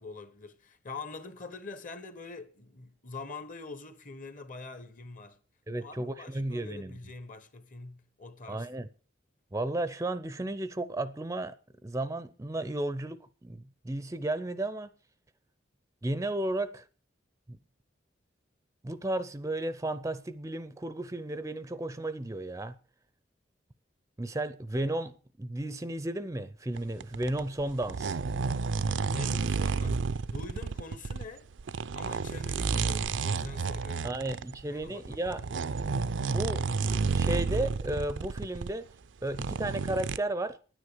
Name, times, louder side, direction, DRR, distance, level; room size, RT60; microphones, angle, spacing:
voice 1, 0.0-5.4 5.7-8.7 29.0-30.1 30.3-31.5 31.9-34.2 34.7-35.4, left 3 dB, 45° left, 1.1 m, -44 dB
voice 2, 5.7-7.0 8.5-8.9 9.5-11.6 11.8-14.9 16.0-16.8 18.8-22.7 24.2-28.2 34.0-35.4 36.2-38.9 39.2-40.6, right 1 dB, 15° right, 0.5 m, -34 dB
sound 1, 26.8-31.3 31.5-38.7 39.2-40.2, right 4 dB, 75° right, 0.5 m, -31 dB
10.5 x 9.7 x 6.5 m
head